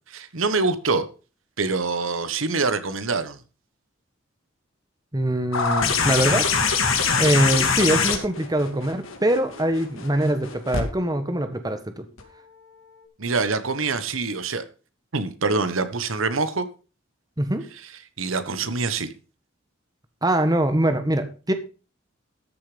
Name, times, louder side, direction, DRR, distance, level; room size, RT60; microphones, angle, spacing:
voice 1, 0.1-1.0 1.6-3.4 6.2-6.3 13.2-14.6 15.1-16.7 18.2-19.1, right 4 dB, 80° right, 1.3 m, -25 dB
voice 2, 5.1-6.8 7.2-12.1 17.4-17.7 20.2-21.5, right 1 dB, 20° right, 1.3 m, -23 dB
sound 1, 5.5-10.8 12.2-12.3, left 5 dB, 85° left, 2.6 m, -23 dB
13.5 x 6.9 x 5.2 m
head